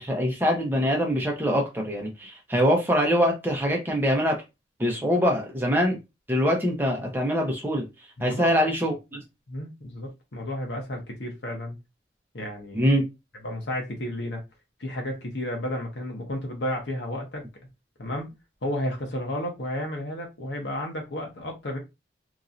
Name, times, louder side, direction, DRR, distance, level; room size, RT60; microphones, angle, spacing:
voice 1, 0.0-4.4 4.8-6.0 6.3-7.9 8.2-9.2 12.7-13.0, equal, 10° right, 0.7 m, -24 dB
voice 2, 8.2-8.6 9.5-11.8 12.3-12.9 13.4-14.4 14.8-17.4 18.0-18.3 18.6-21.8, left 1 dB, 80° left, 1.0 m, -32 dB
3.0 x 2.7 x 2.5 m
head